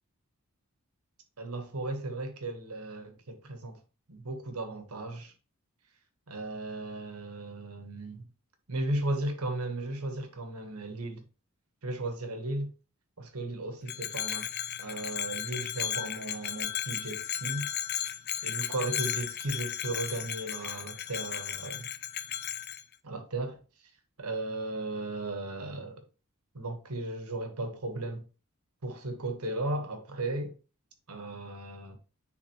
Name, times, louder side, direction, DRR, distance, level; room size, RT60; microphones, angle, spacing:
voice 1, 1.4-3.8 4.1-5.3 6.3-8.2 8.7-11.2 11.8-12.7 13.2-14.5 14.8-17.7 18.4-21.9 23.0-23.6 24.2-26.0 26.5-28.3 28.8-30.6 31.1-32.0, right 2 dB, 85° right, 1.4 m, -35 dB
Bell, 13.9-22.8, left 10 dB, 45° left, 0.5 m, -35 dB
9.8 x 3.6 x 3.1 m
head